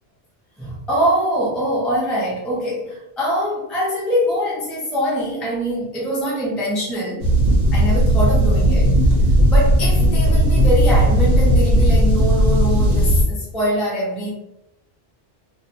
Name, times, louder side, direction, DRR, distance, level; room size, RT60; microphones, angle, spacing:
voice 1, 0.6-7.3 7.7-8.9 9.5-14.3, equal, ahead, -5 dB, 0.5 m, -23 dB
sound 1, 7.2-13.2, equal, 60° right, 0.9 m, -15 dB
2.4 x 2.1 x 2.7 m, 0.84 s
omnidirectional pair, 1.1 m